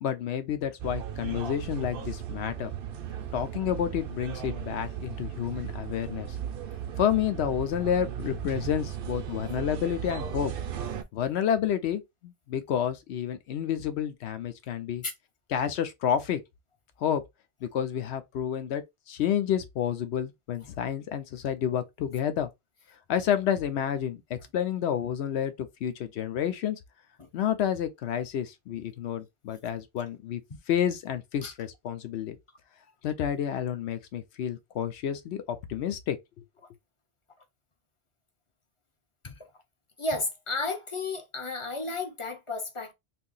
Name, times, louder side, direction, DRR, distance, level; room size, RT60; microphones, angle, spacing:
voice 1, 0.0-2.7 3.3-6.4 7.0-10.5 11.1-15.0 15.5-16.4 17.0-17.2 17.6-22.5 23.1-26.8 27.3-30.4 30.7-32.4 33.0-36.4, left 9 dB, 80° left, 0.9 m, -30 dB
sound 1, 0.8-11.0, right 9 dB, 65° right, 0.7 m, -36 dB
voice 2, 40.0-42.9, left 3 dB, 35° left, 0.6 m, -33 dB
2.7 x 2.6 x 3.8 m
omnidirectional pair, 1.1 m